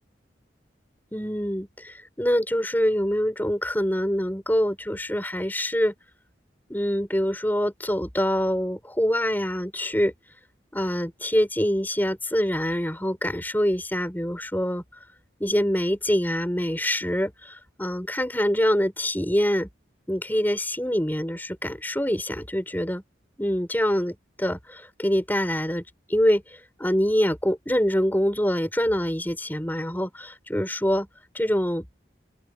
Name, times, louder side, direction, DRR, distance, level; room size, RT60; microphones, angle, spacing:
voice 1, 1.1-5.9 6.7-10.1 10.7-14.8 15.4-19.7 20.1-23.0 23.4-25.8 26.1-31.1 31.3-31.9, equal, 10° left, 4.8 m, -25 dB
head